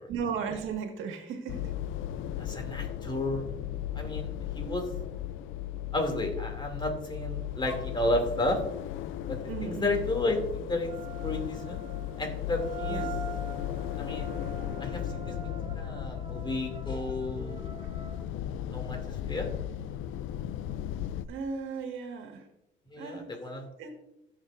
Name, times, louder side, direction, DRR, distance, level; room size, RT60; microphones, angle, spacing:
voice 1, 0.1-1.7 9.5-9.9 12.9-13.1 21.3-22.4 23.0-23.3 23.5-23.9, right 6 dB, 90° right, 4 dB, 1.8 m, -36 dB
sound 1, 1.5-21.3, left 11 dB, 85° left, 0.5 m, -36 dB
voice 2, 2.4-3.5 3.9-4.3 4.5-4.9 5.9-8.6 9.3-10.9 11.2-11.8 12.2-13.1 14.0-14.3 14.8-17.7 18.7-19.5 22.9-23.7, left 2 dB, 25° left, 3 dB, 2.6 m, -32 dB
sound 2, 7.7-7.9 10.8-18.3, right 6 dB, 25° right, 1.4 m, -44 dB
16.5 x 7.0 x 2.6 m, 0.85 s
cardioid pair, 90°, 20 cm